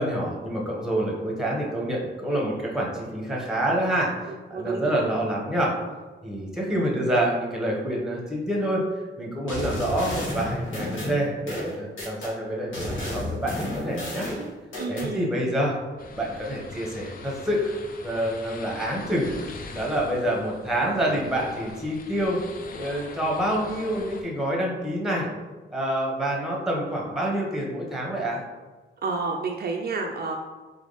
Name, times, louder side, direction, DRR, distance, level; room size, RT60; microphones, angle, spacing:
voice 1, 0.0-5.7 6.2-8.8 9.2-14.3 14.9-15.8 16.1-17.7 18.0-22.4 22.7-25.3 25.7-28.4, right 1 dB, ahead, -3 dB, 0.9 m, -27 dB
voice 2, 4.5-5.1 14.8-15.3 29.0-30.3, right 4 dB, 50° right, 1 dB, 0.4 m, -30 dB
sound 1, 9.5-12.3 12.7-15.1, left 1 dB, 75° left, 1.3 m, -32 dB
sound 2, 16.0-24.2, left 3 dB, 45° left, 0.5 m, -42 dB
3.9 x 3.5 x 3.9 m, 1.3 s
wide cardioid pair, 175°, 20 cm